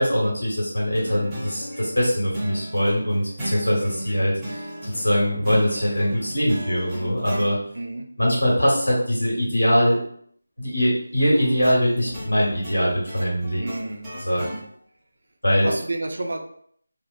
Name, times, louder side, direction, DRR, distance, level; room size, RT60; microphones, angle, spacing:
voice 1, 0.0-7.6 8.2-10.0 10.6-13.6 14.2-14.4 15.4-15.7, equal, 75° left, -5 dB, 1.4 m, -22 dB
sound 1, 0.9-7.5 11.2-14.6, equal, 10° right, 0.6 m, -35 dB
voice 2, 7.7-8.1 13.6-14.1 14.4-14.7 15.6-16.4, right 2 dB, 60° right, 4 dB, 0.4 m, -30 dB
2.8 x 2.0 x 2.4 m, 0.63 s
figure-of-eight pair, 165°, 0 cm